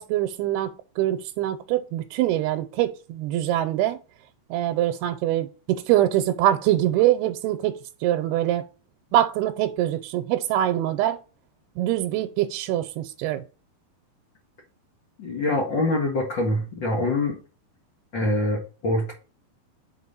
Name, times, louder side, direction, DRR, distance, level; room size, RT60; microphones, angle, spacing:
voice 1, 0.0-4.0 4.5-8.6 9.1-11.2 11.8-13.4, right 13 dB, 85° right, 2.6 m, -24 dB
voice 2, 15.2-17.4 18.1-19.1, left 1 dB, 50° left, 1.3 m, -24 dB
5.9 x 4.6 x 5.6 m
omnidirectional pair, 4.7 m